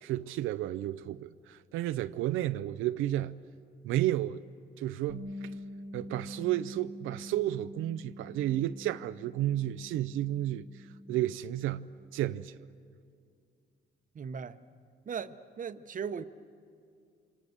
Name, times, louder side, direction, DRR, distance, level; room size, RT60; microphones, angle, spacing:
voice 1, 0.0-3.4 3.8-4.4 4.8-5.5 5.9-12.6, right 13 dB, 90° right, 0.5 m, -32 dB
Bass guitar, 5.1-11.3, equal, 80° left, 3.1 m, -45 dB
voice 2, 14.1-14.6 15.0-16.2, right 6 dB, 40° right, 0.9 m, -38 dB
29.0 x 25.5 x 6.7 m
cardioid pair, 90°, 20 cm